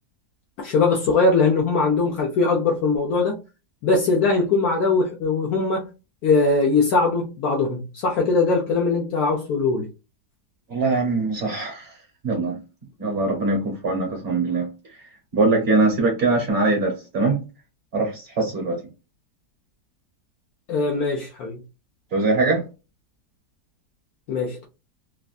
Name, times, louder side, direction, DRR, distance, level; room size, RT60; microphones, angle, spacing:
voice 1, 0.6-3.4 3.8-5.9 6.2-9.9 20.7-21.6 24.3-24.7, left 3 dB, 70° left, 1.1 m, -21 dB
voice 2, 10.7-11.9 12.2-12.6 13.0-14.7 15.3-17.4 17.9-18.8 22.1-22.6, right 3 dB, 40° right, 1.1 m, -22 dB
3.3 x 2.5 x 2.3 m
omnidirectional pair, 1.7 m